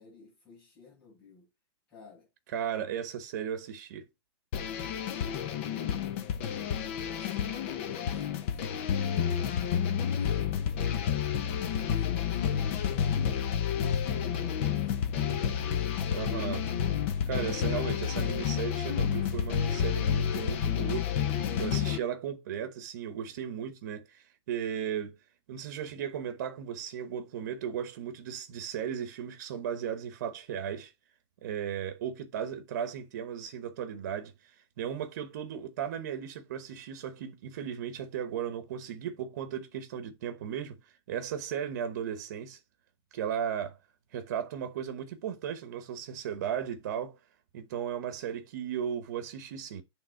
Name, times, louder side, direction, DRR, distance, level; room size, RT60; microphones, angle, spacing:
voice 1, 0.0-1.5 1.9-2.3 4.8-5.5 6.1-9.6 10.2-16.0, left 5 dB, 10° left, 5.7 m, -55 dB
voice 2, 2.5-4.0 16.1-16.7 17.3-21.1 21.6-25.2 25.5-30.9 31.4-34.3 34.8-40.8 41.1-42.6 43.1-43.8 44.1-47.2 47.5-49.8, right 8 dB, 40° right, 1.1 m, -36 dB
sound 1, 4.5-22.0, left 8 dB, 30° left, 0.7 m, -30 dB
8.8 x 3.6 x 4.5 m
supercardioid pair, 180°, 13 cm